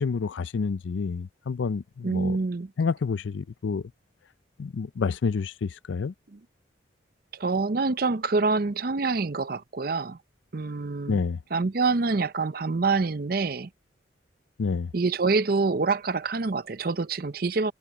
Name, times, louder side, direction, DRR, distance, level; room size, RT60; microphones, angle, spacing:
voice 1, 0.0-2.4 2.8-3.8 4.6-6.1 11.1-11.4 14.6-14.9, left 5 dB, 80° left, 0.4 m, -28 dB
voice 2, 2.0-2.7 6.3-6.4 7.3-10.2 10.5-11.2 11.5-13.7 14.9-17.7, right 4 dB, 50° right, 0.6 m, -26 dB
head